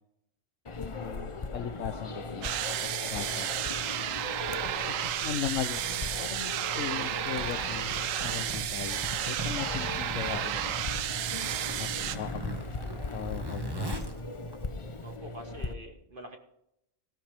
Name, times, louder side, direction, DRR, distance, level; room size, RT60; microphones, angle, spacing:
sound 1, 0.7-15.7, left 3 dB, 30° left, 0.7 m, -39 dB
voice 1, 1.0-3.5 4.2-4.3 5.0-11.0 11.7-12.8 13.1-14.1, left 9 dB, 80° left, 8 dB, 1.2 m, -38 dB
sound 2, 2.4-12.2, right 11 dB, 90° right, 1.0 m, -32 dB
voice 2, 4.4-4.9 15.0-16.4, equal, 45° right, 4 dB, 1.7 m, -45 dB
Zipper (clothing), 7.2-15.2, right 1 dB, 20° right, 1.5 m, -40 dB
18.5 x 14.0 x 3.4 m, 0.81 s
omnidirectional pair, 1.3 m